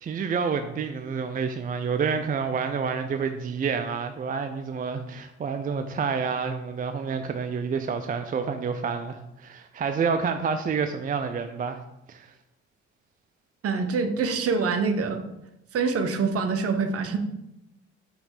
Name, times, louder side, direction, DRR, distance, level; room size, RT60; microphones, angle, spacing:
voice 1, 0.0-11.8 12.1-12.3, right 5 dB, 30° right, 7 dB, 0.4 m, -28 dB
voice 2, 13.6-15.2 15.7-17.2, right 4 dB, 50° right, 7 dB, 0.8 m, -25 dB
6.0 x 3.2 x 5.1 m, 0.86 s
cardioid pair, 90°, 29 cm